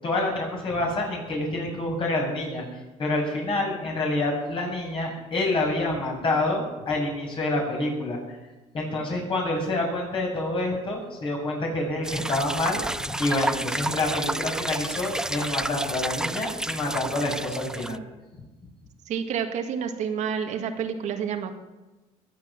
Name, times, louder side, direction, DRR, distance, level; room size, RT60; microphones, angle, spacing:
voice 1, 0.0-8.4 8.7-18.0, left 2 dB, 40° left, -1 dB, 7.5 m, -27 dB
sound 1, 12.0-18.0, right 1 dB, 5° right, 0.5 m, -30 dB
voice 2, 19.1-21.5, right 7 dB, 65° right, 5 dB, 2.0 m, -29 dB
22.0 x 8.8 x 7.5 m, 1.1 s
cardioid pair, 105°, 13 cm